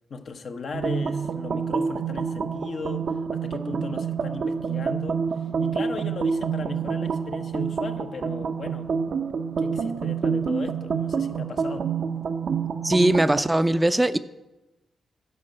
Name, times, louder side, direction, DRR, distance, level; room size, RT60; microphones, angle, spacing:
voice 1, 0.1-8.9 9.6-11.9, left 4 dB, 65° left, 0.8 m, -37 dB
sound 1, 0.7-13.5, right 6 dB, 70° right, 0.6 m, -27 dB
voice 2, 12.8-14.2, right 1 dB, 15° right, 0.4 m, -20 dB
9.5 x 5.3 x 7.6 m
supercardioid pair, 45°, 0 cm